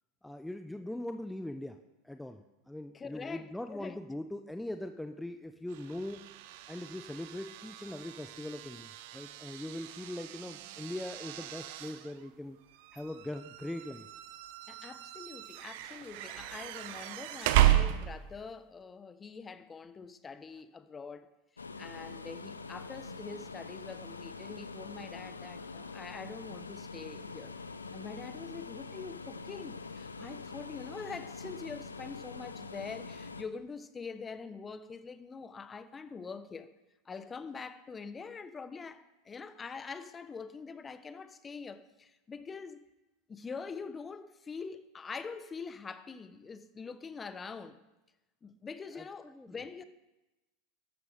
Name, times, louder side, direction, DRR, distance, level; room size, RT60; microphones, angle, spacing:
voice 1, 0.2-1.8 2.0-6.2 6.7-12.6 12.9-14.1 48.9-49.5, left 1 dB, 5° left, 0.8 m, -41 dB
voice 2, 2.9-4.0 14.7-21.3 21.6-27.5 27.9-36.7 37.0-42.9 43.3-47.8 48.4-49.8, left 5 dB, 20° left, 1.1 m, -44 dB
sound 1, 5.7-18.5, right 13 dB, 60° right, 0.9 m, -34 dB
sound 2, 21.6-33.4, left 4 dB, 90° left, 0.7 m, -44 dB
13.5 x 11.5 x 5.1 m
hypercardioid pair, 85°, 0 cm